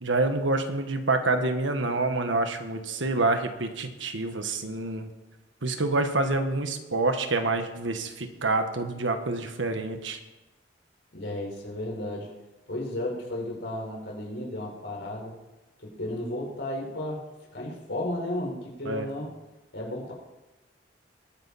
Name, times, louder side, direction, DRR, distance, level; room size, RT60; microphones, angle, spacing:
voice 1, 0.0-5.1 5.6-10.2 18.8-19.1, right 2 dB, 85° right, 7 dB, 1.5 m, -27 dB
voice 2, 11.1-12.3 12.7-15.3 15.8-17.2 17.5-19.3 19.7-20.1, left 1 dB, 70° left, -1 dB, 4.6 m, -33 dB
20.5 x 9.9 x 4.3 m, 1.1 s
head